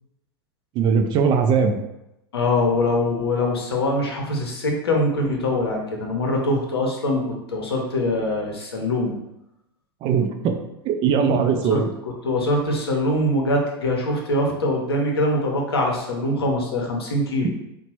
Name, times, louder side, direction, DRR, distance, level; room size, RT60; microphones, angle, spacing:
voice 1, 0.8-1.8 10.0-10.6 10.8-11.9, right 6 dB, 40° right, 5 dB, 0.4 m, -20 dB
voice 2, 2.3-9.2 11.5-11.8 12.2-17.5, left 1 dB, 80° left, 0 dB, 0.7 m, -23 dB
2.9 x 2.1 x 3.0 m, 0.88 s
hypercardioid pair, 90°, 13 cm